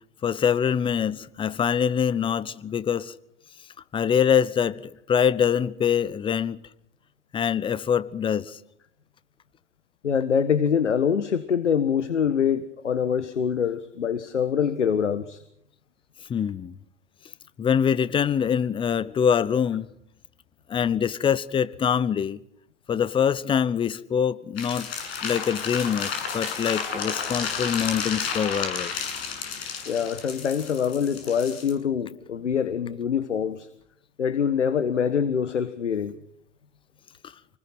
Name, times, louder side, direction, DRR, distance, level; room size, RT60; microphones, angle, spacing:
voice 1, 0.2-3.1 3.9-6.6 7.3-8.6 16.3-16.7 17.6-19.9 20.7-22.4 22.9-24.9 25.2-28.9, left 8 dB, 15° left, 1.0 m, -24 dB
voice 2, 10.0-15.4 29.8-33.7 34.2-36.1, left 7 dB, 70° left, 1.5 m, -25 dB
sound 1, 24.6-31.7, left 6 dB, 55° left, 7.8 m, -32 dB
28.5 x 20.5 x 6.1 m
figure-of-eight pair, 95°, 36 cm